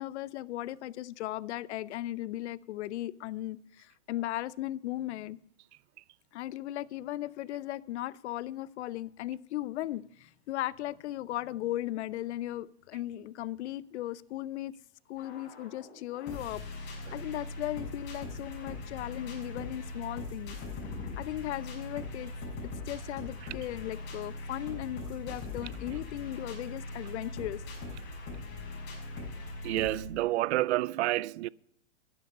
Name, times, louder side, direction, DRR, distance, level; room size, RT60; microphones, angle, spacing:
voice 1, 0.0-5.4 6.3-14.7 15.1-20.6 21.2-22.3 22.9-27.6, left 14 dB, 65° left, 0.6 m, -37 dB
sound 1, 15.2-30.0, left 2 dB, 30° left, 5.7 m, -41 dB
voice 2, 29.6-31.5, right 16 dB, 65° right, 0.5 m, -29 dB
12.0 x 10.0 x 5.3 m
hypercardioid pair, 140°, 36 cm